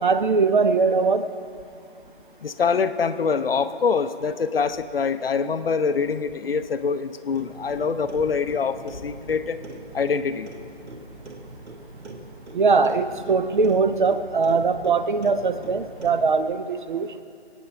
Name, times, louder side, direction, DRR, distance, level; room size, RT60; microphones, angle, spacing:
voice 1, 0.0-1.3 12.5-17.1, right 4 dB, 45° right, 12 dB, 0.7 m, -21 dB
voice 2, 2.4-9.6 9.9-10.5, left 5 dB, 55° left, 11 dB, 0.7 m, -24 dB
Clock, 7.3-16.4, right 2 dB, 75° right, 1.7 m, -42 dB
26.0 x 9.2 x 3.4 m, 2.4 s
figure-of-eight pair, 145°, 34 cm